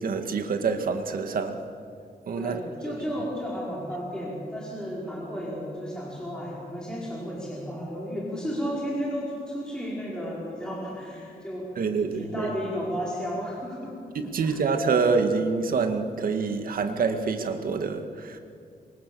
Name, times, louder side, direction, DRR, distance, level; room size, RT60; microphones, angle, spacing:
voice 1, 0.0-1.6 2.3-2.6 11.8-12.5 14.1-18.4, right 5 dB, 65° right, 6 dB, 2.1 m, -26 dB
voice 2, 2.4-11.8 12.2-14.0 14.4-14.6, equal, 5° left, -5 dB, 5.0 m, -33 dB
26.0 x 24.0 x 7.1 m, 2.4 s
wide cardioid pair, 150°, 16 cm